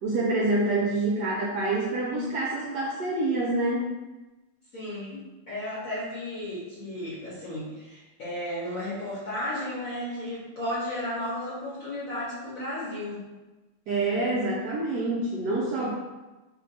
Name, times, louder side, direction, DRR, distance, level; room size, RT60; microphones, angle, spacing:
voice 1, 0.0-3.9 13.9-15.9, right 2 dB, 70° right, -5 dB, 1.0 m, -26 dB
voice 2, 4.7-13.2, left 1 dB, 55° left, -8 dB, 1.1 m, -34 dB
3.4 x 2.2 x 3.9 m, 1.1 s
omnidirectional pair, 2.3 m